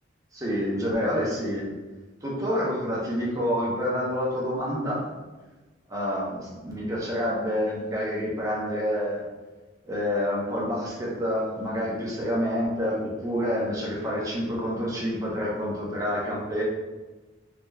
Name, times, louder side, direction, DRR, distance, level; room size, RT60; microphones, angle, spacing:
voice 1, 0.3-1.7 2.2-5.0 5.9-9.3 9.8-16.6, equal, 20° right, -4 dB, 0.8 m, -28 dB
3.8 x 3.2 x 2.2 m, 1.2 s
head